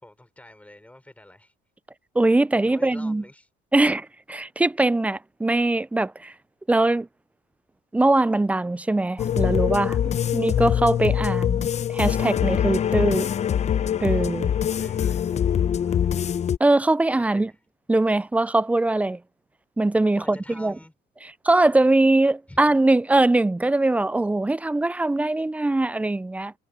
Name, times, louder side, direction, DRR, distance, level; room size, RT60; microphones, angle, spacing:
voice 1, 0.0-1.5 2.6-3.5 10.0-10.4 14.1-14.2 14.6-16.4 17.2-17.6 20.1-20.9 22.5-22.6, left 1 dB, 10° left, 3.5 m, -48 dB
voice 2, 2.2-3.2 3.7-6.3 6.7-7.1 7.9-10.0 10.3-13.3 14.0-14.5 16.6-17.5 17.9-19.2 19.8-20.8 21.2-26.5, right 2 dB, 10° right, 0.4 m, -22 dB
sound 1, 9.2-16.6, left 9 dB, 40° left, 0.8 m, -23 dB
cardioid pair, 110°, 17 cm